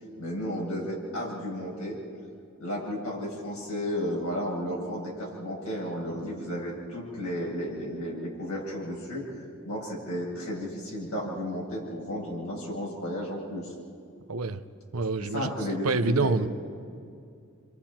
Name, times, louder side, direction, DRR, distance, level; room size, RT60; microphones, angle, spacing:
voice 1, 0.2-2.0 2.6-13.7 15.2-16.4, equal, 90° left, -4 dB, 7.8 m, -33 dB
voice 2, 14.3-14.6 14.9-15.5 15.8-16.5, right 3 dB, 80° right, 10 dB, 0.9 m, -26 dB
29.0 x 24.5 x 4.4 m, 2.4 s
head